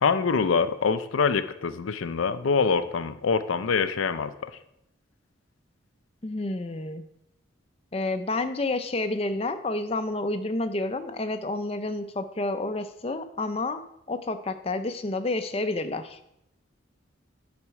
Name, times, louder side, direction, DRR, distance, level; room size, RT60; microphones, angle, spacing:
voice 1, 0.0-4.5, left 5 dB, 90° left, 12 dB, 0.5 m, -25 dB
voice 2, 6.2-7.0 7.9-13.8 14.1-16.2, left 2 dB, 30° left, 9 dB, 0.5 m, -29 dB
10.0 x 4.3 x 4.7 m, 0.79 s
head